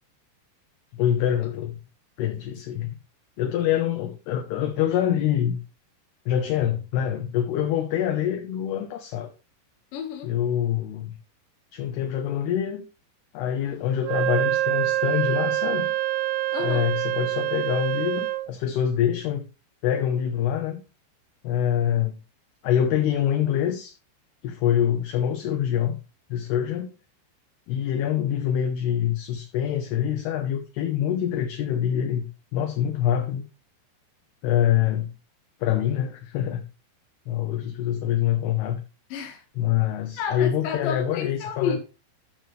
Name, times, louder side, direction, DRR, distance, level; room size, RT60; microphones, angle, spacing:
voice 1, 0.9-1.8 2.2-3.0 3.4-5.6 6.3-9.3 10.2-11.2 11.7-12.9 13.3-15.9 16.6-19.5 19.8-20.8 21.4-22.2 22.6-23.9 24.4-26.0 26.3-27.0 27.7-33.4 34.4-35.1 35.6-36.6 37.3-38.8 39.6-41.8, left 10 dB, 70° left, 2.7 m, -25 dB
voice 2, 9.9-10.3 16.5-16.8 39.1-39.4 40.2-41.8, left 6 dB, 55° left, 3.0 m, -30 dB
Wind instrument woodwind instrument, 14.0-18.5, right 14 dB, 85° right, 2.4 m, -26 dB
14.0 x 6.1 x 3.3 m
omnidirectional pair, 5.4 m